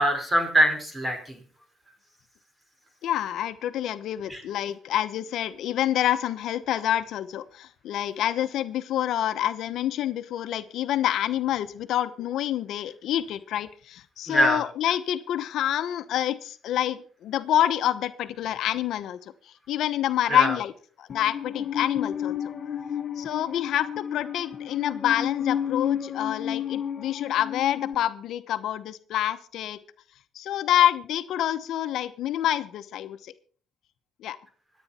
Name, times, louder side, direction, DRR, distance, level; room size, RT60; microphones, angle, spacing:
voice 1, 0.0-1.4 4.3-4.4 14.3-14.6 20.3-20.6, equal, 15° right, 5 dB, 4.8 m, -23 dB
voice 2, 3.0-19.3 19.7-20.7 21.0-22.4 23.2-29.8 30.3-33.3 34.2-34.4, left 11 dB, 75° left, 11 dB, 0.9 m, -27 dB
Musical instrument, 21.1-27.9, left 9 dB, 45° left, 1.3 m, -31 dB
25.0 x 9.2 x 4.3 m, 0.44 s
cardioid pair, 105°, 0 cm